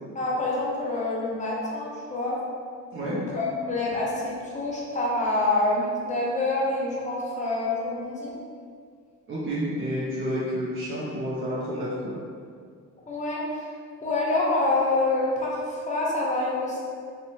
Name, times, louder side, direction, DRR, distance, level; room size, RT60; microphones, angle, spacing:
voice 1, 0.1-2.4 3.0-8.3 13.1-13.7 14.0-16.8, left 2 dB, 25° left, -5 dB, 0.7 m, -27 dB
voice 2, 9.3-12.1, equal, 45° right, -8 dB, 0.5 m, -30 dB
2.6 x 2.1 x 3.0 m, 2.1 s
cardioid pair, 90°, 30 cm